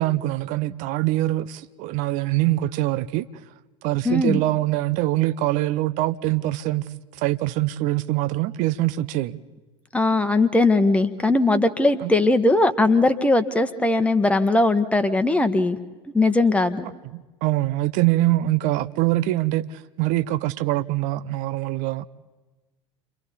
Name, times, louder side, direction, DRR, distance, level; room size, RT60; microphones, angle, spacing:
voice 1, 0.0-3.3 3.8-6.9 7.1-9.4 12.0-12.1 17.1-22.1, right 16 dB, 55° right, 0.8 m, -24 dB
voice 2, 4.0-4.4 9.9-15.8 16.1-16.9, left 2 dB, 10° left, 1.3 m, -19 dB
29.5 x 24.5 x 4.2 m
figure-of-eight pair, 75°, 16 cm